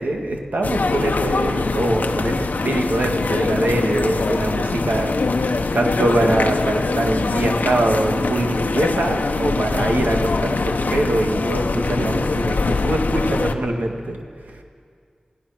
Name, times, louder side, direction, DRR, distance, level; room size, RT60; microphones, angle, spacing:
voice 1, 0.0-2.3 2.6-5.2 5.7-14.2, right 1 dB, 90° right, 2 dB, 2.1 m, -23 dB
sound 1, 0.6-13.5, left 3 dB, 85° left, 0.9 m, -23 dB
29.0 x 16.0 x 5.9 m, 2.1 s
wide cardioid pair, 80°, 3 cm